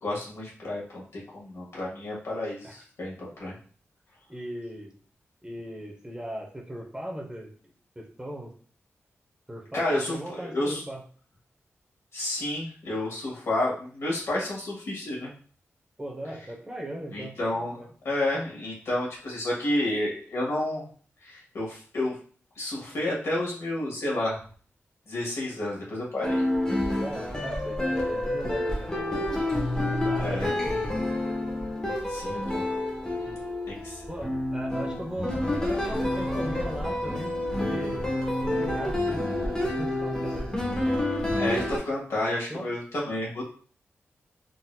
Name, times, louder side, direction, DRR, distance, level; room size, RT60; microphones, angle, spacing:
voice 1, 0.0-3.5 9.7-10.8 12.1-15.3 17.1-20.9 21.2-22.2 22.6-24.4 25.1-26.4 30.2-30.5 32.1-32.6 33.7-34.0 41.4-43.4, left 1 dB, 70° left, -4 dB, 1.5 m, -30 dB
voice 2, 4.3-4.9 5.4-8.5 9.5-11.0 16.0-17.3 17.8-17.9 27.0-30.9 33.1-33.4 34.1-37.4 37.6-38.1 38.4-40.5 42.3-42.7, right 1 dB, 15° right, -1 dB, 0.8 m, -38 dB
sound 1, 26.2-41.8, left 1 dB, 15° left, 0.9 m, -28 dB
3.8 x 2.7 x 2.2 m, 0.44 s
wide cardioid pair, 95°, 5 cm